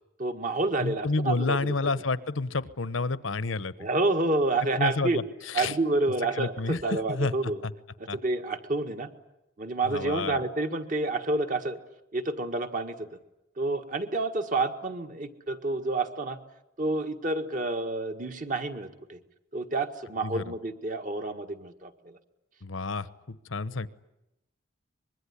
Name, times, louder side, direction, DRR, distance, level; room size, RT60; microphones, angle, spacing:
voice 1, 0.2-1.6 3.8-5.2 5.5-7.6 8.1-9.1 9.6-11.8 12.1-13.2 13.6-16.4 16.8-19.2 19.5-22.2, right 2 dB, 40° right, 7 dB, 1.7 m, -29 dB
voice 2, 0.8-3.9 4.7-5.7 6.3-7.7 8.1-8.2 9.8-10.4 20.2-20.4 22.6-23.9, left 3 dB, 85° left, 15 dB, 1.0 m, -30 dB
25.0 x 22.0 x 10.0 m, 0.90 s
head